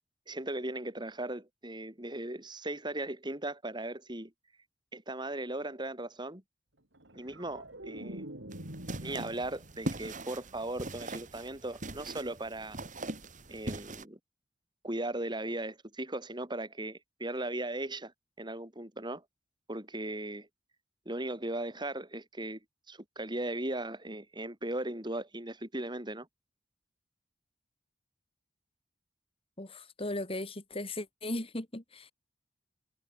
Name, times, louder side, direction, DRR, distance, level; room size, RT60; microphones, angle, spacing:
voice 1, 0.3-4.3 4.9-6.4 7.1-8.2 9.0-12.8 13.5-14.2 14.8-18.1 18.4-19.2 19.7-20.5 21.1-22.6 22.9-26.3, right 1 dB, 25° right, 5.3 m, -37 dB
sound 1, 6.9-10.1 10.5-10.9, right 1 dB, 85° right, 5.8 m, -45 dB
sound 2, 8.5-14.0, right 2 dB, 45° right, 3.5 m, -41 dB
voice 2, 29.6-32.1, left 1 dB, 30° left, 3.1 m, -37 dB
head